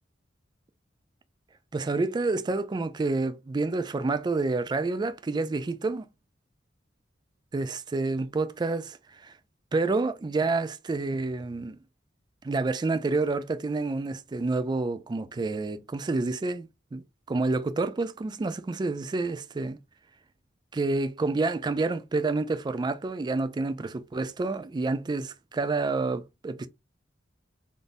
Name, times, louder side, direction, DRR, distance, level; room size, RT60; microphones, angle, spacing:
voice 1, 1.7-6.1 7.5-9.3 9.7-11.8 12.4-19.8 20.7-26.7, right 3 dB, 25° right, 0.3 m, -29 dB
3.6 x 2.5 x 2.6 m
head